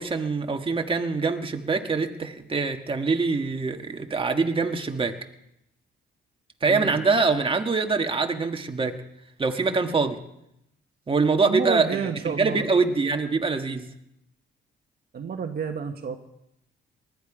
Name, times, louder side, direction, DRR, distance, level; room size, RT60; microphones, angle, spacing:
voice 1, 0.0-5.1 6.6-8.9 9.4-10.2 11.1-13.9, right 4 dB, 25° right, 4 dB, 1.6 m, -24 dB
voice 2, 11.4-12.7 15.1-16.2, right 6 dB, 50° right, 5 dB, 1.4 m, -30 dB
20.0 x 12.0 x 5.0 m, 0.81 s
cardioid pair, 90°, 20 cm